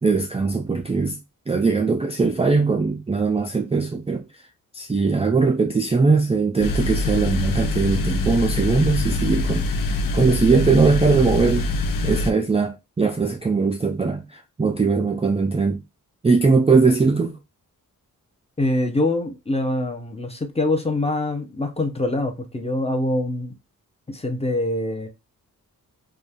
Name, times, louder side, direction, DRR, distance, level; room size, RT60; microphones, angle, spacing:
voice 1, 0.0-1.2 1.5-4.4 4.7-15.8 16.2-17.4, right 4 dB, 20° right, 0.3 m, -20 dB
sound 1, 6.6-12.3, left 2 dB, 65° left, 0.5 m, -24 dB
voice 2, 18.6-23.5 24.1-25.1, left 2 dB, 15° left, 0.7 m, -24 dB
2.6 x 2.3 x 3.4 m
cardioid pair, 65°, 36 cm